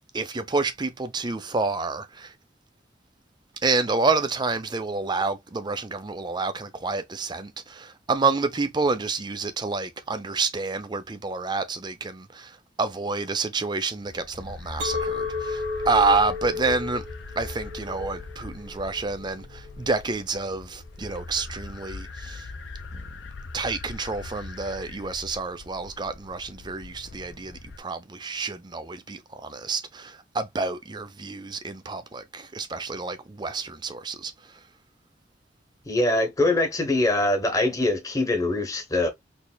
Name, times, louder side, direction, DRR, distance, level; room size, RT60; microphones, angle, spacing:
voice 1, 0.1-2.3 3.6-17.0 17.4-22.5 22.9-23.0 23.5-34.3, right 3 dB, 25° right, 0.5 m, -28 dB
sound 1, 14.0-27.8, left 3 dB, 85° left, 0.7 m, -41 dB
Chink clink, 14.8-20.0, left 4 dB, 65° right, 1.4 m, -33 dB
voice 2, 35.9-39.1, left 2 dB, 20° left, 0.9 m, -23 dB
4.1 x 3.2 x 2.2 m
head